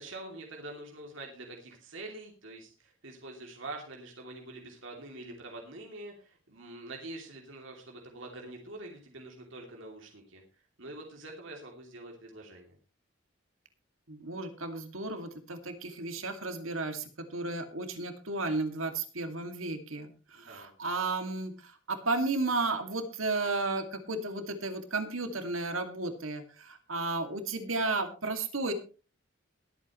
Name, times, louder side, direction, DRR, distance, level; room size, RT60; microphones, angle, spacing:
voice 1, 0.0-10.4 10.8-12.7 20.3-20.7, right 2 dB, 70° right, 1 dB, 3.0 m, -45 dB
voice 2, 14.1-17.0 17.3-20.1 20.4-21.5 21.9-28.7, right 3 dB, 85° right, 7 dB, 2.4 m, -33 dB
21.5 x 8.7 x 3.1 m, 0.34 s
head